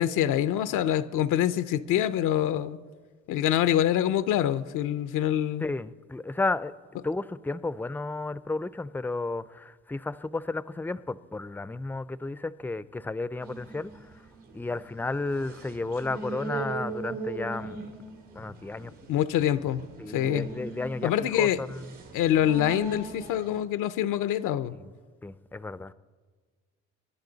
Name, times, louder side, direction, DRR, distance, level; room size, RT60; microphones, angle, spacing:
voice 1, 0.0-2.8 3.3-5.7 19.1-19.8 20.1-20.5 21.0-21.6 22.1-24.8, left 11 dB, 90° left, 14 dB, 0.6 m, -25 dB
voice 2, 5.6-6.7 7.0-13.9 14.5-17.9 18.3-18.9 20.0-21.8 24.7-24.9 25.2-25.9, left 3 dB, 5° left, 16 dB, 0.4 m, -33 dB
sound 1, 13.4-23.6, right 4 dB, 80° right, 2.6 m, -40 dB
26.0 x 11.5 x 4.0 m, 1.5 s
cardioid pair, 90°, 30 cm